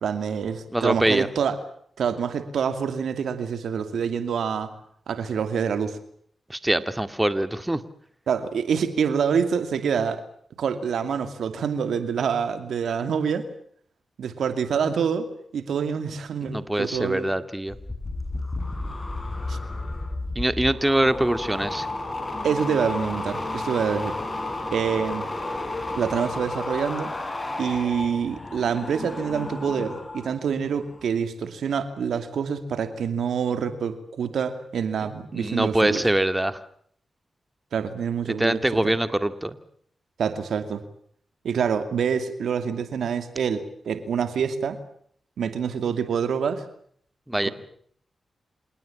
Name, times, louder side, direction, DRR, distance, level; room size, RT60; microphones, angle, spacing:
voice 1, 0.0-1.6 2.0-4.7 5.1-6.0 8.3-10.2 10.6-13.5 14.2-15.3 15.5-17.3 19.5-19.6 22.4-24.2 24.7-25.3 26.0-27.1 27.6-36.0 37.7-38.9 40.2-40.8 41.4-44.8 45.4-46.6 47.4-47.5, right 7 dB, 80° right, 10 dB, 2.5 m, -26 dB
voice 2, 0.7-1.3 6.5-7.8 16.5-17.8 20.4-21.9 35.3-36.6 38.4-39.6 47.3-47.5, right 1 dB, 15° right, 12 dB, 2.2 m, -23 dB
sound 1, 17.7-30.4 30.7-31.1, left 2 dB, 35° left, 7.7 m, -32 dB
28.0 x 18.0 x 8.7 m, 0.64 s
supercardioid pair, 45°, 0 cm